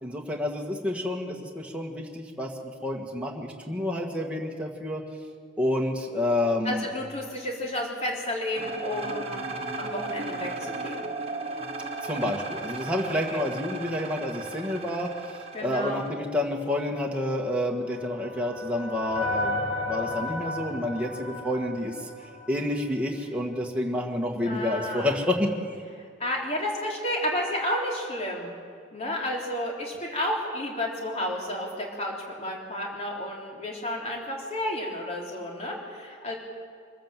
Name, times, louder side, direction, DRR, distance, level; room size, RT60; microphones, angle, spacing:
voice 1, 0.0-2.5 2.8-5.0 5.6-6.8 12.0-15.3 15.6-19.6 19.9-22.0 22.5-25.5, left 1 dB, 5° right, -1 dB, 1.8 m, -29 dB
voice 2, 6.6-9.5 9.8-11.1 13.3-13.4 15.5-16.0 24.4-25.2 26.2-28.5 28.9-36.3, left 1 dB, 35° left, -1 dB, 3.4 m, -31 dB
sound 1, 8.6-16.1, right 3 dB, 30° right, 1.6 m, -35 dB
sound 2, 17.5-22.8, left 2 dB, 75° left, 7.6 m, -34 dB
24.0 x 14.0 x 7.6 m, 2.1 s
head